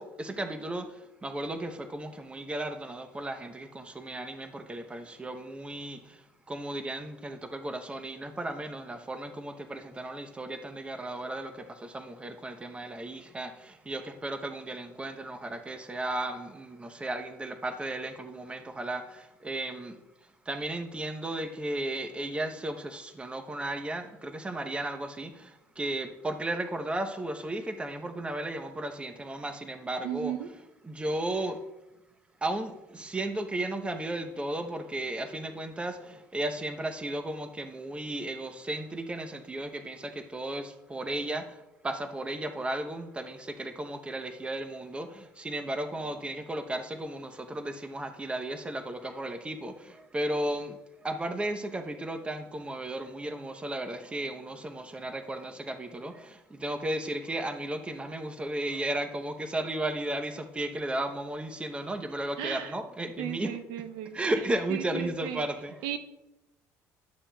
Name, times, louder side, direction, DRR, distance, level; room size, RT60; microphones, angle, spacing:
voice 1, 0.0-6.2 6.5-20.0 20.5-30.3 30.8-31.6 32.4-41.6 41.8-50.8 51.0-63.6 64.1-65.9, right 1 dB, 15° right, 0.7 m, -35 dB
voice 2, 30.0-30.5 62.4-62.7 63.2-65.4 65.8-66.0, right 11 dB, 80° right, 0.6 m, -36 dB
11.5 x 7.0 x 2.2 m
supercardioid pair, 85°, 7 cm